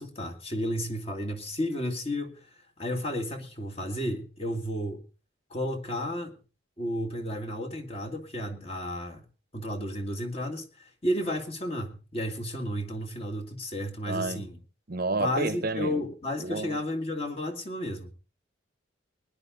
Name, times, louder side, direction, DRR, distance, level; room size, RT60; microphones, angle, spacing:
voice 1, 0.0-2.4 2.8-5.0 5.5-6.3 6.8-9.2 9.5-14.6 15.2-18.1, left 1 dB, 30° left, 2.1 m, -32 dB
voice 2, 14.1-14.5 14.9-16.0 16.4-16.8, right 3 dB, 50° right, 0.9 m, -30 dB
19.5 x 10.5 x 3.9 m
head